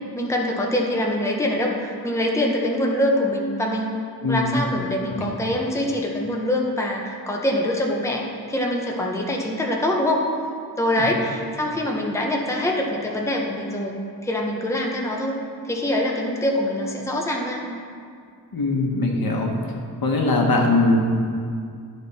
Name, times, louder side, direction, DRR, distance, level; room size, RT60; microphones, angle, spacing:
voice 1, 0.1-4.0 4.2-10.2 10.8-14.0 14.2-17.6, left 1 dB, 5° left, -1 dB, 0.8 m, -24 dB
voice 2, 4.2-4.6 5.2-5.3 11.0-11.1 18.5-19.6 20.0-21.0, left 2 dB, 65° left, 0 dB, 1.0 m, -21 dB
10.5 x 4.3 x 4.1 m, 2.3 s
wide cardioid pair, 100°, 39 cm